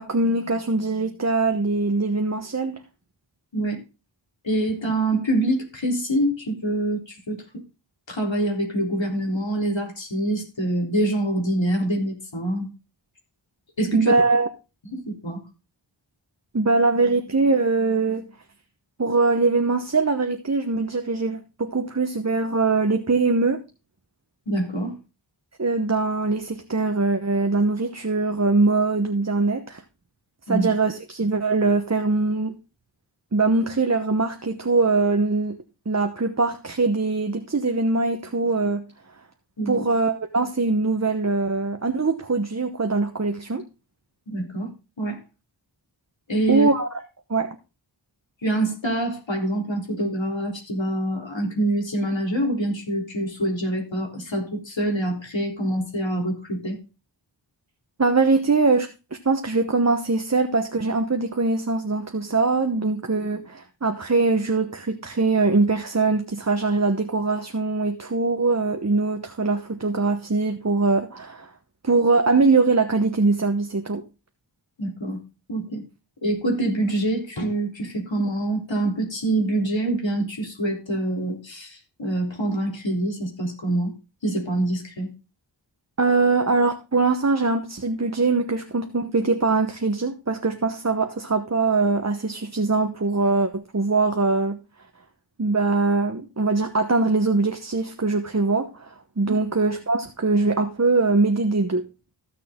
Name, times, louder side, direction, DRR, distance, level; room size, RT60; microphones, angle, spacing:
voice 1, 0.0-2.8 13.9-14.5 16.5-18.3 19.0-23.6 25.6-29.8 30.5-32.5 33.3-35.6 35.9-38.9 39.7-43.6 46.5-46.9 47.3-47.5 58.0-58.9 59.2-71.5 71.8-74.0 86.0-94.6 95.4-101.9, right 3 dB, 35° right, 1.1 m, -22 dB
voice 2, 4.4-7.6 8.1-12.7 13.8-14.1 14.9-15.4 24.5-25.0 30.5-30.7 39.6-39.9 44.3-44.7 45.0-45.2 46.3-46.7 48.4-56.8 74.8-75.2 75.5-75.8 76.2-83.9 84.2-85.1 99.2-99.4, right 1 dB, 70° left, 3.8 m, -25 dB
14.5 x 6.8 x 3.7 m
wide cardioid pair, 65°, 46 cm